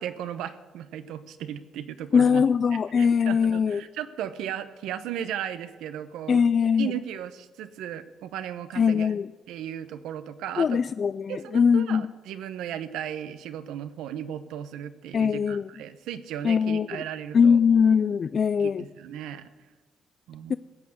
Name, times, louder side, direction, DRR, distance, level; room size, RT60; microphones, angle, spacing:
voice 1, 0.0-2.4 3.0-6.4 6.8-9.1 9.5-10.8 11.3-17.6 18.6-19.5 20.3-20.6, right 10 dB, 90° right, 0.9 m, -36 dB
voice 2, 2.1-3.8 6.3-6.9 8.8-9.3 10.6-12.1 15.1-15.7 16.4-17.0 17.3-18.9 20.5-20.6, left 6 dB, 50° left, 0.3 m, -21 dB
16.0 x 8.7 x 8.0 m
cardioid pair, 90°, 0 cm